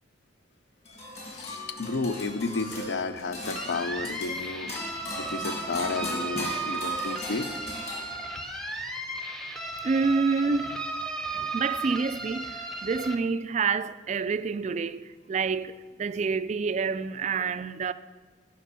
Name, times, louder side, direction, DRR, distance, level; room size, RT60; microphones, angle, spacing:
sound 1, 0.8-8.5, left 1 dB, 35° left, 1.8 m, -38 dB
voice 1, 1.3-4.7 5.2-7.5, left 3 dB, 65° left, 0.5 m, -32 dB
sound 2, 3.6-13.2, right 2 dB, ahead, 0.7 m, -35 dB
voice 2, 9.8-10.8 11.3-17.9, right 4 dB, 35° right, 0.3 m, -28 dB
9.9 x 5.2 x 6.8 m
head